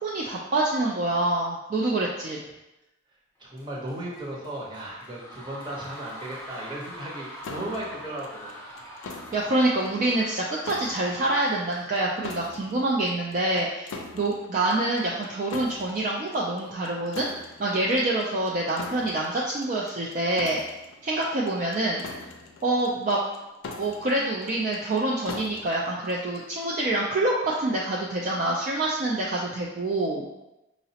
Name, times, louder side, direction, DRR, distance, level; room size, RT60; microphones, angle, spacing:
voice 1, 0.0-2.4 9.3-17.3 17.6-20.6 21.0-22.3 22.6-23.2 23.8-30.3, right 2 dB, 40° right, -4 dB, 0.3 m, -26 dB
voice 2, 3.4-8.5, right 1 dB, 25° right, -5 dB, 0.8 m, -36 dB
sound 1, 3.5-11.8, equal, 10° left, 0.6 m, -44 dB
sound 2, 7.4-26.8, left 3 dB, 80° left, 0.4 m, -43 dB
4.8 x 2.0 x 2.7 m, 0.96 s
head